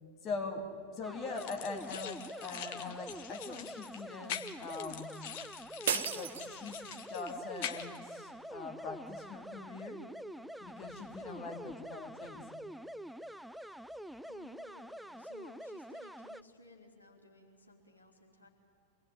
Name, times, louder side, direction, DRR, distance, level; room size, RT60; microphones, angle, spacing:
voice 1, 0.2-5.1 5.8-6.8 7.1-10.0 10.6-12.5, left 4 dB, 30° left, 3 dB, 3.0 m, -42 dB
sound 1, 1.0-16.4, equal, ahead, 0.5 m, -46 dB
sound 2, 1.3-8.0, left 9 dB, 50° left, 1.6 m, -44 dB
sound 3, 5.9-7.1, right 8 dB, 60° right, 1.2 m, -35 dB
voice 2, 11.2-11.6 14.3-18.5, left 2 dB, 80° left, 1 dB, 3.4 m, -58 dB
26.5 x 20.0 x 9.5 m, 2.7 s
figure-of-eight pair, 90°, 0 cm